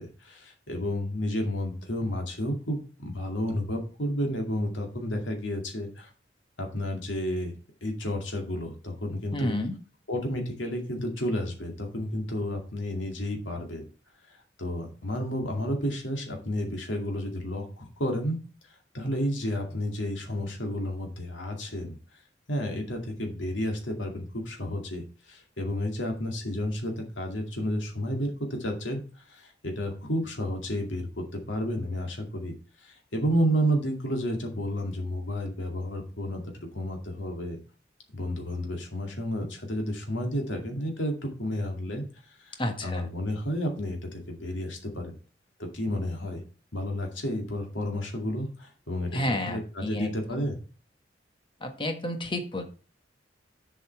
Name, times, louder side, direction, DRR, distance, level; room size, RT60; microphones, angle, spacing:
voice 1, 0.0-6.1 6.6-9.5 10.1-13.9 14.3-18.4 18.9-22.0 22.5-29.0 29.3-36.4 36.7-37.6 38.1-42.0 42.4-45.2 45.6-46.4 46.7-49.2 49.5-50.6, equal, 90° left, 2 dB, 2.2 m, -31 dB
voice 2, 9.3-9.7 42.6-43.1 49.1-50.4 51.6-52.6, left 1 dB, 25° left, 6 dB, 1.3 m, -31 dB
7.5 x 5.6 x 4.6 m, 0.37 s
head